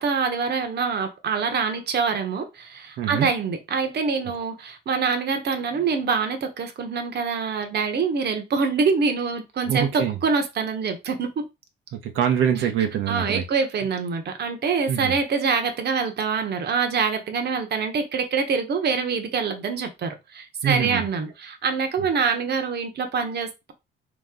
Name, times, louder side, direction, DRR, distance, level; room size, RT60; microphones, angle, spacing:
voice 1, 0.0-11.4 13.1-23.7, right 5 dB, 55° right, 1.0 m, -25 dB
voice 2, 3.0-3.3 9.7-10.2 11.9-13.4 14.9-15.1 20.6-21.0, right 8 dB, 85° right, 0.9 m, -24 dB
3.9 x 3.1 x 3.7 m
cardioid pair, 90°, 20 cm